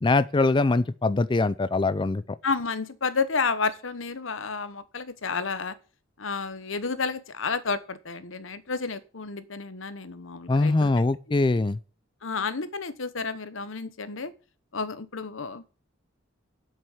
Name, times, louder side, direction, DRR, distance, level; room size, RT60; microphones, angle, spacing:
voice 1, 0.0-2.4 10.5-11.8, left 3 dB, 25° left, 0.4 m, -23 dB
voice 2, 2.4-5.7 6.2-10.9 12.2-14.3 14.7-15.7, left 4 dB, 80° left, 1.1 m, -31 dB
7.8 x 7.7 x 8.1 m
head